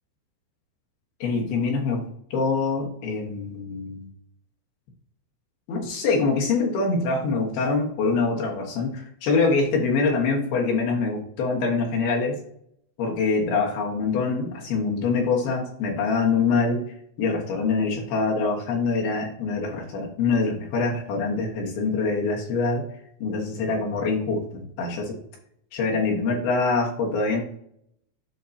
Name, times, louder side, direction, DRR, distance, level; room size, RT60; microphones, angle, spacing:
voice 1, 1.2-2.0 2.3-4.1 5.7-12.4 13.0-16.9 17.2-22.8 23.2-25.2 25.7-27.4, left 4 dB, 70° left, -1 dB, 2.5 m, -24 dB
12.5 x 4.7 x 2.7 m, 0.69 s
omnidirectional pair, 6.0 m